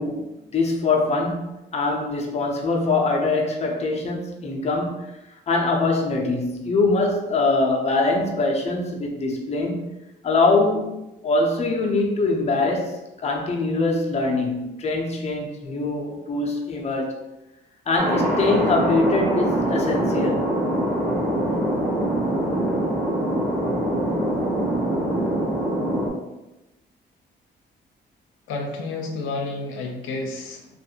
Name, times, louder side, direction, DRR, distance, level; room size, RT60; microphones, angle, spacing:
voice 1, 0.0-5.1 5.5-9.9 10.2-11.0 11.2-17.2 17.9-20.6, left 3 dB, 35° left, 0 dB, 0.6 m, -23 dB
Thunder, 18.0-26.1, right 1 dB, 5° right, 0.9 m, -23 dB
voice 2, 28.5-30.8, left 3 dB, 90° left, 0 dB, 0.6 m, -30 dB
2.5 x 2.4 x 2.8 m, 0.98 s
cardioid pair, 90°, 20 cm